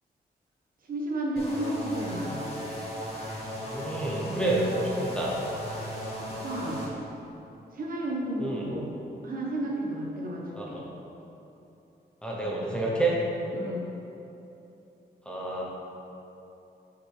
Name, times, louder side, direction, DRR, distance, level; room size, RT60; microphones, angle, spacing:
voice 1, 0.9-2.4 6.3-6.8 7.7-8.9 9.2-10.8 13.5-13.9, right 1 dB, 55° right, -3 dB, 1.1 m, -32 dB
sound 1, 1.4-6.9, equal, 35° left, 1.1 m, -36 dB
voice 2, 3.7-5.4 8.4-8.7 10.5-10.8 12.2-13.3 15.3-15.6, right 1 dB, 5° left, -5 dB, 0.6 m, -29 dB
6.5 x 5.7 x 3.2 m, 2.9 s
wide cardioid pair, 170°, 17 cm